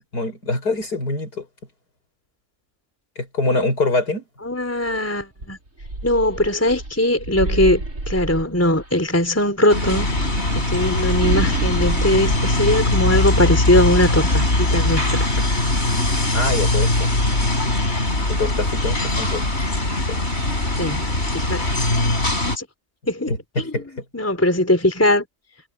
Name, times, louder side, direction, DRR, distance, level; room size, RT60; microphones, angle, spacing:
voice 1, 0.1-1.5 3.2-4.2 16.3-17.0 18.3-19.4 20.1-20.3 23.3-23.9, left 2 dB, 55° left, 7.1 m, -24 dB
voice 2, 4.4-5.6 6.0-10.1 10.7-15.0 20.8-21.0 21.3-21.7 22.6-22.7 23.1-23.3 23.6-23.7 24.1-25.3, left 1 dB, 5° left, 3.8 m, -20 dB
sound 1, 4.8-5.0 5.4-9.0 10.0-13.6, right 2 dB, 45° right, 4.8 m, -28 dB
sound 2, 9.7-22.6, left 2 dB, 35° left, 5.6 m, -21 dB
omnidirectional pair, 2.0 m